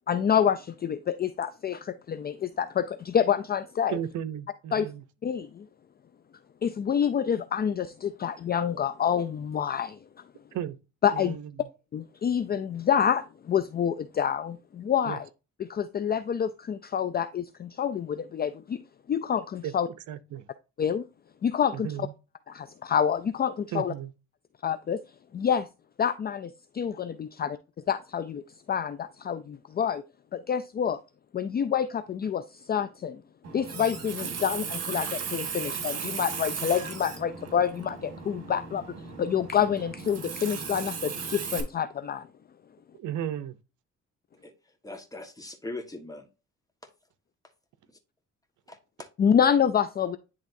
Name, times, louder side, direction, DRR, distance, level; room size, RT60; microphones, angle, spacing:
voice 1, 0.1-4.0 4.7-4.9 5.2-5.6 6.6-10.0 11.0-11.4 11.9-15.3 15.6-18.8 19.1-19.9 20.8-21.0 21.4-22.1 22.5-23.9 24.6-25.0 25.3-25.7 26.0-27.6 27.9-28.4 28.7-30.0 30.3-31.0 31.3-33.2 33.5-42.2 49.2-50.2, left 8 dB, 30° left, 0.4 m, -27 dB
voice 2, 3.9-5.0 10.5-10.8 11.1-11.5 15.1-15.2 19.6-19.7 20.1-20.4 21.8-22.1 23.7-24.1 43.0-43.6, right 10 dB, 75° right, 0.7 m, -34 dB
Water tap faucet, 33.4-41.6, right 6 dB, 55° right, 2.0 m, -36 dB
voice 3, 44.8-46.3 47.9-48.0 48.7-49.1, left 2 dB, 10° left, 1.4 m, -40 dB
10.0 x 3.5 x 2.6 m
cardioid pair, 90°, 30 cm